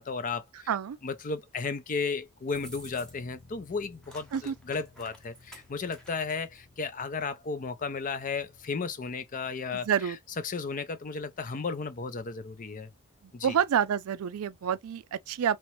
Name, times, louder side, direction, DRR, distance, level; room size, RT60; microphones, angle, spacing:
voice 1, 0.0-0.7 1.0-10.2 10.4-12.9 13.3-13.6, left 4 dB, 35° left, 0.5 m, -34 dB
Bass guitar, 2.5-8.8, left 3 dB, 70° left, 0.7 m, -56 dB
sound 1, 2.5-3.4 3.7-6.6, equal, 5° left, 0.8 m, -51 dB
voice 2, 9.7-10.2 13.4-15.6, right 8 dB, 75° right, 0.4 m, -28 dB
3.0 x 3.0 x 3.0 m
head